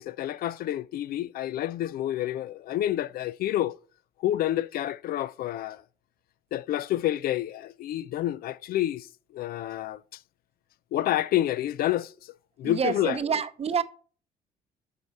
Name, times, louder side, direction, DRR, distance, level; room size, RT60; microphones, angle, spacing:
voice 1, 0.0-3.8 4.2-5.8 6.5-9.1 9.3-10.0 10.9-12.1 12.6-13.2, left 13 dB, 65° left, 0.4 m, -28 dB
voice 2, 12.6-13.8, right 6 dB, 40° right, 0.7 m, -27 dB
8.2 x 5.4 x 4.1 m
supercardioid pair, 75°, 17 cm